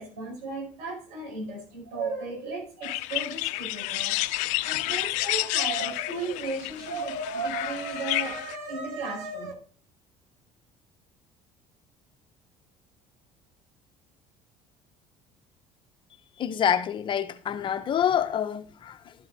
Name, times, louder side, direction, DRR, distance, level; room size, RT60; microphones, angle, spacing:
voice 1, 0.0-4.2 4.6-9.5, right 3 dB, 90° right, 5.3 m, -34 dB
sound 1, 2.8-8.6, left 19 dB, 75° left, 0.4 m, -30 dB
voice 2, 16.4-19.1, left 9 dB, 40° left, 0.8 m, -27 dB
12.5 x 7.9 x 2.8 m
cardioid pair, 110°, 12 cm